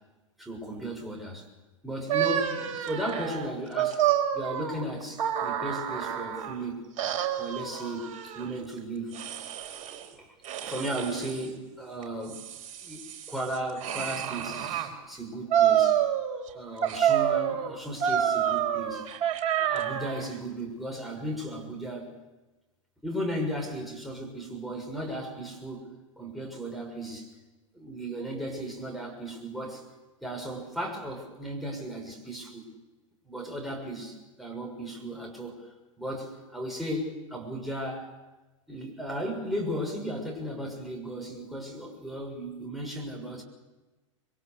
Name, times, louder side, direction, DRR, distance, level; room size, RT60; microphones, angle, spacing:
voice 1, 0.4-1.5 1.8-6.9 7.4-9.2 10.1-10.3 10.6-12.4 12.8-16.0 16.5-19.1 19.6-22.2 23.0-25.9 26.2-27.3 27.7-29.8 30.2-32.7 33.3-35.7 36.0-38.1 38.7-43.4, right 1 dB, ahead, -1 dB, 6.6 m, -35 dB
sound 1, 2.1-6.6 7.0-8.5 9.1-10.0 10.4-11.4 12.0-14.9 15.5-16.5 16.8-20.3, right 10 dB, 45° right, 4.5 m, -28 dB
27.5 x 24.5 x 6.8 m, 1.1 s
figure-of-eight pair, 85°, 17 cm